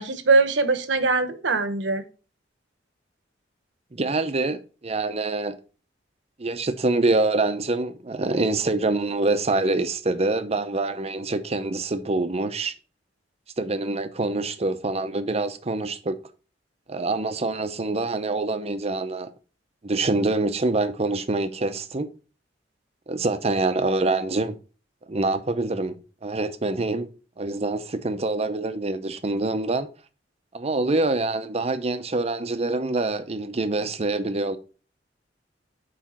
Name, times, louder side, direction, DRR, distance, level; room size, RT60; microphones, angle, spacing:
voice 1, 0.0-2.0, right 3 dB, 75° right, 1.0 m, -22 dB
voice 2, 3.9-5.6 6.4-12.7 13.6-16.2 16.9-19.3 19.8-22.1 23.1-24.5 25.1-27.1 27.4-29.9 30.5-34.6, right 2 dB, 35° right, 0.7 m, -25 dB
7.3 x 5.0 x 4.3 m
head